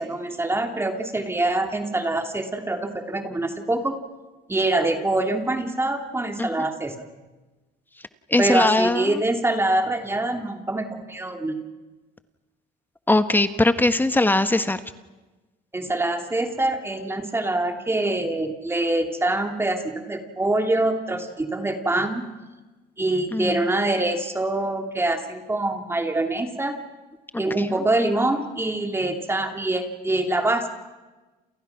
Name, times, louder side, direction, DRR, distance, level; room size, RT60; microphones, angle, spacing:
voice 1, 0.0-4.0 4.5-6.9 8.4-11.6 15.7-22.3 23.0-26.8 27.4-30.7, right 2 dB, 15° right, 5 dB, 2.9 m, -25 dB
voice 2, 8.3-9.2 13.1-14.8 23.3-23.6 27.3-27.7, left 2 dB, 10° left, 10 dB, 1.4 m, -21 dB
29.5 x 28.5 x 6.0 m, 1.2 s
cardioid pair, 110°, 17 cm